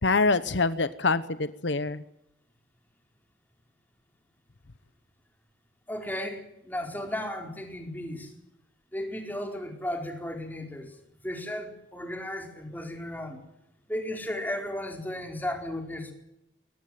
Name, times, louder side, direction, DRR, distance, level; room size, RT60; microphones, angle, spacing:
voice 1, 0.0-2.0, left 3 dB, 70° left, 14 dB, 1.0 m, -25 dB
voice 2, 5.9-8.3 8.9-10.9 11.2-13.4 13.9-16.1, left 1 dB, 10° left, 3 dB, 4.7 m, -35 dB
23.0 x 19.0 x 9.4 m, 0.83 s
head